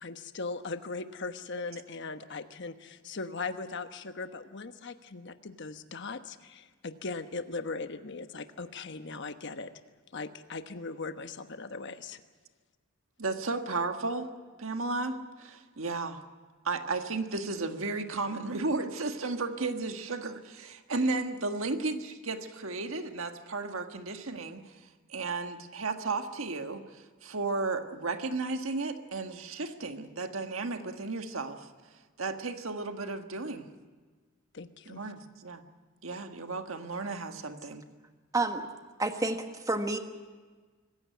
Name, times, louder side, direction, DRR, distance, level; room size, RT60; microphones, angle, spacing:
voice 1, 0.0-9.7 10.1-12.2 34.5-35.0, left 3 dB, 60° left, 9 dB, 1.2 m, -39 dB
voice 2, 13.2-14.3 14.6-16.2 16.6-24.7 25.1-31.7 32.2-33.6 34.9-35.6 36.0-37.8, right 3 dB, 75° right, 6 dB, 1.6 m, -34 dB
voice 3, 38.3-38.7 39.0-40.0, right 2 dB, 15° right, 6 dB, 1.4 m, -29 dB
25.5 x 15.5 x 9.2 m, 1.4 s
head